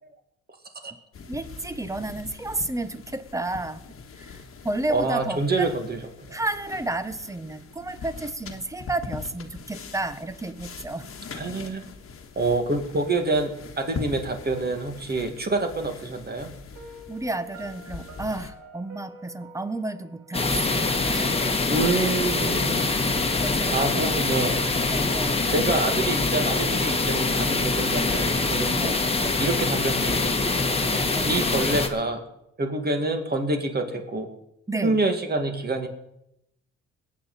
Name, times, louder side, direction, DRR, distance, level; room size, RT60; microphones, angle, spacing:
sound 1, 1.1-18.5, left 5 dB, 45° left, 1.5 m, -42 dB
voice 1, 1.3-3.8 4.2-4.4 4.6-5.7 6.3-11.1 17.1-21.6 21.9-22.2 23.4-24.2 24.9-25.4 28.7-29.1 31.0-31.3 34.7-35.0, right 2 dB, 10° right, 12 dB, 1.0 m, -32 dB
voice 2, 4.9-6.4 11.3-11.9 12.4-16.5 21.7-22.9 23.7-24.6 25.5-29.0 29.4-30.7 31.2-32.2 32.6-34.3 34.8-35.9, right 2 dB, 30° right, 5 dB, 2.3 m, -27 dB
Piano, 16.7-21.7, right 1 dB, 75° right, 2.5 m, -48 dB
sound 2, 20.3-31.9, left 3 dB, 20° left, 1.5 m, -24 dB
21.5 x 9.0 x 4.2 m, 0.82 s
cardioid pair, 90°, 30 cm